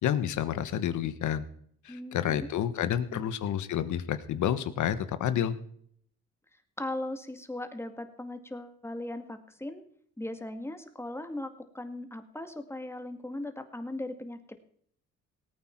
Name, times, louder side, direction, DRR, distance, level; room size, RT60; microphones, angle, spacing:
voice 1, 0.0-1.4 1.8-5.5, left 10 dB, 75° left, 13 dB, 1.3 m, -29 dB
voice 2, 1.9-2.5 3.1-3.3 6.8-9.8 10.2-14.4, left 1 dB, 10° left, 8 dB, 2.0 m, -38 dB
18.5 x 8.9 x 4.6 m, 0.63 s
cardioid pair, 90°, 30 cm